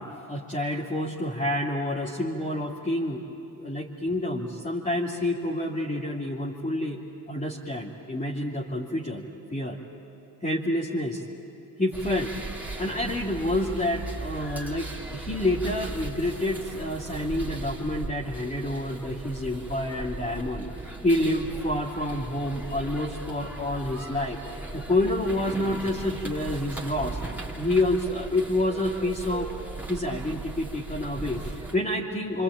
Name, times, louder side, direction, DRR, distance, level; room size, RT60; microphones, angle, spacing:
voice 1, 0.0-3.2 3.6-7.0 7.3-9.2 9.5-9.8 10.4-11.2 11.8-12.3 12.8-20.6 21.0-24.4 24.7-27.2 27.5-29.5 29.9-32.4, left 1 dB, 20° left, -5 dB, 2.7 m, -28 dB
sound 1, 11.9-31.8, right 2 dB, 5° right, 3.2 m, -38 dB
26.0 x 24.5 x 9.0 m, 2.7 s
hypercardioid pair, 65°, 42 cm